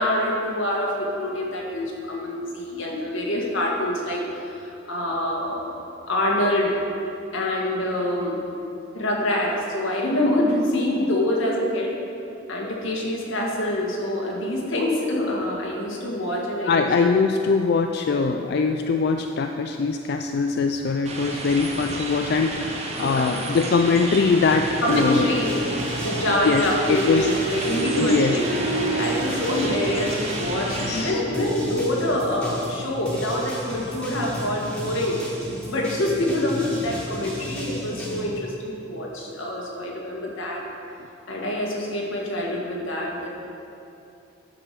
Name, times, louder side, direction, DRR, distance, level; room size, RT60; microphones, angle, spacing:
voice 1, 0.0-5.7 6.1-6.8 7.3-8.4 8.9-11.9 12.5-17.2 23.0-23.3 24.8-25.6 26.0-35.2 35.7-40.6 41.3-43.3, left 1 dB, 85° left, -2 dB, 1.7 m, -25 dB
voice 2, 16.6-25.3 26.4-27.3 28.0-28.4 30.8-31.2, left 4 dB, 55° left, 5 dB, 0.3 m, -22 dB
sound 1, 21.0-31.1, right 2 dB, 35° right, 0.9 m, -32 dB
sound 2, 24.5-31.0 31.3-38.2, equal, 5° left, 1.5 m, -35 dB
Harp, 24.9-33.5, right 3 dB, 70° right, 1.1 m, -33 dB
10.5 x 4.9 x 6.7 m, 2.8 s
head